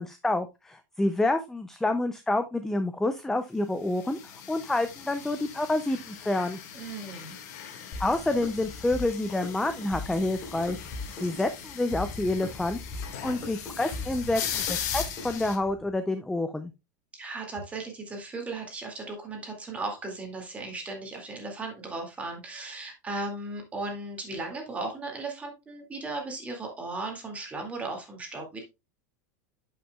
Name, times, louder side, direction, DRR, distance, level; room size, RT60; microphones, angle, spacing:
voice 1, 0.0-4.2 4.5-6.6 8.0-10.8 11.2-12.8 13.2-16.7, left 2 dB, 5° left, 9 dB, 0.4 m, -28 dB
sound 1, 4.0-15.6, left 8 dB, 60° left, 1.8 m, -39 dB
voice 2, 6.7-7.4 17.1-28.6, right 2 dB, 15° right, 1 dB, 2.1 m, -36 dB
sound 2, 7.9-15.9, left 3 dB, 25° left, 3.6 m, -40 dB
11.0 x 5.8 x 2.3 m, 0.23 s
supercardioid pair, 155°, 10 cm